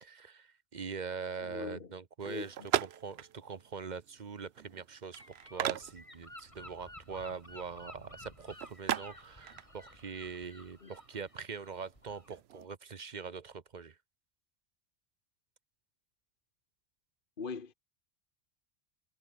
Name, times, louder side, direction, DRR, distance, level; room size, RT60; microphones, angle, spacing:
voice 1, 0.0-2.6 2.8-14.0, right 5 dB, 40° right, 1.0 m, -43 dB
voice 2, 1.4-1.9 2.2-2.5 10.8-10.9 17.4-17.7, left 5 dB, 50° left, 1.5 m, -41 dB
sound 1, 2.2-12.7, right 11 dB, 65° right, 0.9 m, -41 dB
Gull seagull / Wind, 5.1-12.4, left 1 dB, 25° left, 6.5 m, -54 dB
omnidirectional pair, 1.2 m